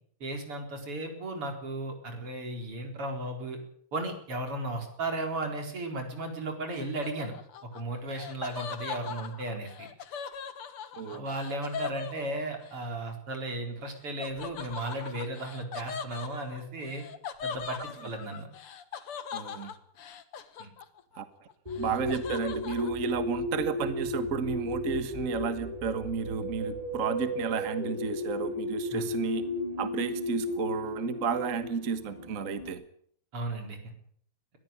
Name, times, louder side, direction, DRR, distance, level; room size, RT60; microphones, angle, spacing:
voice 1, 0.2-3.6 3.9-7.3 7.7-9.9 11.1-17.0 17.4-18.5 20.6-20.7 28.9-29.0 33.3-33.8, right 2 dB, 80° right, 5 dB, 5.1 m, -35 dB
Laughter, 6.7-12.8 14.2-21.2 21.5-22.9, left 7 dB, 80° left, 2.4 m, -40 dB
voice 2, 19.3-19.7 21.2-21.3 21.8-29.4 29.8-32.8, right 6 dB, 40° right, 11 dB, 1.7 m, -32 dB
sound 1, 21.7-32.7, left 1 dB, 15° right, 3.0 m, -34 dB
21.5 x 14.5 x 8.6 m, 0.62 s
omnidirectional pair, 2.4 m